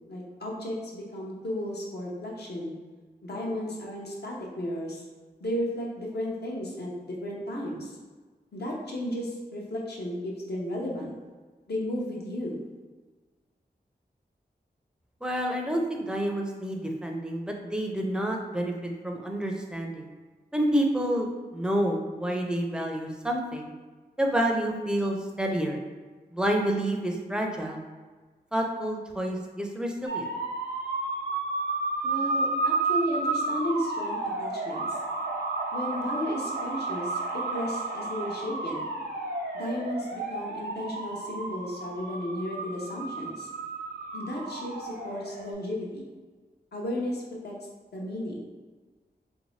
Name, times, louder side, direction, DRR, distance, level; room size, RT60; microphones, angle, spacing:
voice 1, 0.1-2.8 3.2-5.1 5.4-7.9 8.5-11.1 11.7-12.6 32.0-35.0 35.7-38.9 39.5-43.5 44.1-46.1 46.7-47.5 47.9-48.4, left 1 dB, 75° left, -3 dB, 0.8 m, -34 dB
voice 2, 15.2-20.1 20.5-23.7 24.2-25.8 26.3-27.8 28.5-30.3, right 1 dB, 5° right, 1 dB, 0.4 m, -29 dB
sound 1, 30.1-45.5, right 3 dB, 75° right, 0.6 m, -32 dB
3.0 x 2.7 x 3.1 m, 1.4 s
wide cardioid pair, 100°, 17 cm